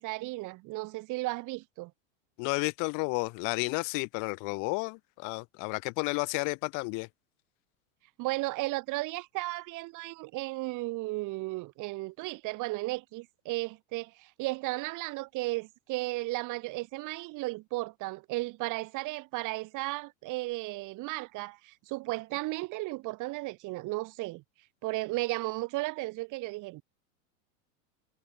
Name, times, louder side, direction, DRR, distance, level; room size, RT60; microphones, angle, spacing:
voice 1, 0.0-1.9 8.2-24.4 24.8-26.8, right 21 dB, 45° right, 7.9 m, -34 dB
voice 2, 2.4-7.1, left 31 dB, 45° left, 1.5 m, -32 dB
supercardioid pair, 135°, 42 cm